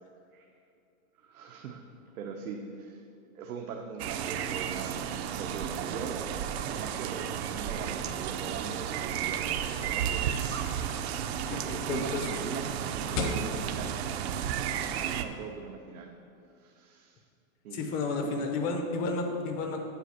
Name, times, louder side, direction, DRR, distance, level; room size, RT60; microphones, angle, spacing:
voice 1, 1.2-1.8 2.1-3.0 3.3-5.1 5.3-6.2 6.5-10.7 11.5-12.6 12.9-13.9 14.8-16.1 16.6-17.2 17.6-18.3, right 5 dB, 90° right, 2 dB, 0.9 m, -41 dB
sound 1, 4.0-15.2, right 9 dB, 50° right, 0.5 m, -33 dB
sound 2, 9.7-15.1, left 3 dB, 60° left, 1.3 m, -40 dB
voice 2, 11.5-12.3 17.7-19.8, left 3 dB, 20° left, 4 dB, 0.6 m, -32 dB
8.3 x 5.0 x 6.6 m, 2.5 s
supercardioid pair, 160°, 43 cm